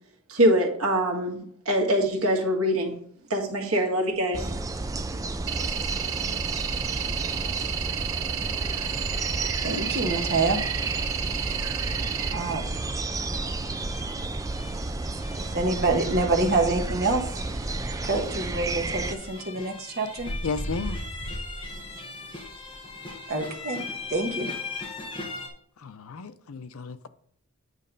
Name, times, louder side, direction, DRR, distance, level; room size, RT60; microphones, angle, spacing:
voice 1, 0.3-3.0 3.3-4.5, equal, 90° right, 1.6 m, -24 dB
sound 1, 4.3-19.1, right 2 dB, 15° right, 0.3 m, -31 dB
sound 2, 5.5-12.3, right 9 dB, 65° right, 0.7 m, -32 dB
sound 3, 8.7-25.5, left 2 dB, 25° left, 1.3 m, -39 dB
voice 2, 9.6-10.6 12.3-12.8 15.5-17.2 18.0-20.3 23.3-23.8 24.1-24.5, right 3 dB, 50° right, 1.2 m, -26 dB
voice 3, 20.4-21.0 25.8-27.1, left 4 dB, 85° left, 0.6 m, -33 dB
9.0 x 3.2 x 5.2 m
head